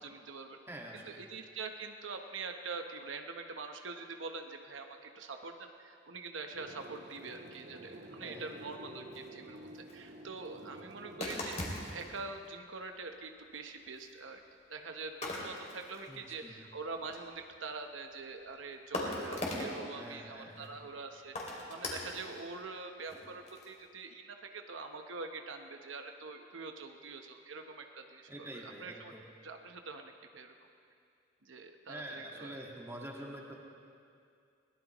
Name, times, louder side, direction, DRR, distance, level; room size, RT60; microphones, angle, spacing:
voice 1, 0.0-0.6 0.9-11.6 11.9-14.4 14.7-29.1 29.4-30.5 31.4-32.6, right 4 dB, 85° right, 5 dB, 1.0 m, -44 dB
voice 2, 0.7-1.2 8.2-8.5 16.1-16.6 19.9-20.8 28.3-29.2 31.9-33.6, right 1 dB, 15° right, -2 dB, 1.7 m, -46 dB
sound 1, 6.5-12.2, right 1 dB, 65° right, 1.6 m, -50 dB
sound 2, 9.1-9.3 9.7-9.9 11.2-12.2 13.2-13.3 13.8-14.1 15.2-16.2 16.4-16.5 16.7-17.6 18.4-18.5 18.9-19.8 20.6-20.7 21.4-22.4 23.0-23.8, left 1 dB, 35° left, 2.6 m, -39 dB
21.5 x 18.0 x 3.0 m, 2.4 s
head